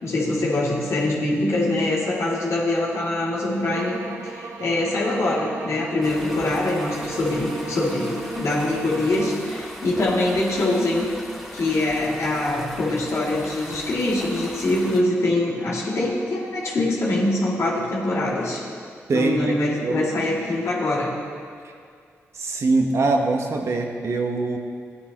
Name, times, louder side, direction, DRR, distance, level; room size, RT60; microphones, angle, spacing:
voice 1, 0.0-11.1 11.5-18.6 19.1-21.2, left 2 dB, 70° left, -5 dB, 2.5 m, -24 dB
sound 1, 3.7-9.5, right 4 dB, 80° right, 0.8 m, -37 dB
sound 2, 6.0-15.0, equal, ahead, 2.7 m, -39 dB
voice 2, 19.1-20.1 22.3-24.6, right 3 dB, 60° right, 2 dB, 1.3 m, -23 dB
15.5 x 9.6 x 3.0 m, 2.2 s
cardioid pair, 50°, 5 cm